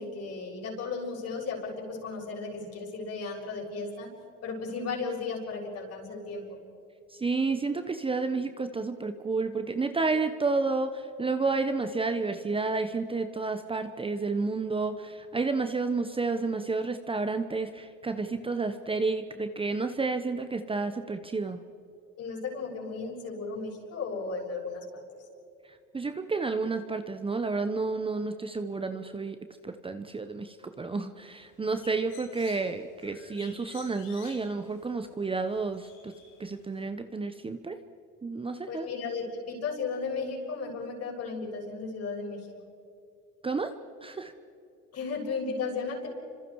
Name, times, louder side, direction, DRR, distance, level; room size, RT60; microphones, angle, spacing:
voice 1, 0.0-4.1 4.4-6.4 22.2-25.0 38.7-42.4 44.9-46.1, left 4 dB, 45° left, 0 dB, 6.9 m, -35 dB
voice 2, 7.1-21.6 25.9-29.4 29.6-36.1 36.4-37.8 38.2-38.9 43.4-43.7 44.0-44.3, right 3 dB, 15° right, 8 dB, 1.0 m, -30 dB
Bird, 31.4-36.8, left 7 dB, 90° left, 6.2 m, -53 dB
29.5 x 26.5 x 4.8 m, 2.6 s
supercardioid pair, 105°, 34 cm